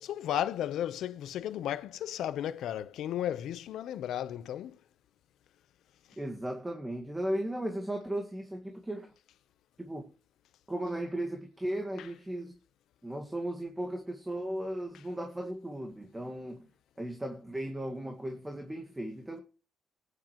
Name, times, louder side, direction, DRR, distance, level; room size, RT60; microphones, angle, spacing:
voice 1, 0.0-4.8, left 11 dB, 80° left, 0.9 m, -34 dB
voice 2, 6.2-9.1 9.8-10.1 10.7-12.6 13.0-16.7 17.0-19.4, right 1 dB, 10° right, 1.9 m, -36 dB
19.0 x 9.8 x 3.2 m
cardioid pair, 90°, 0 cm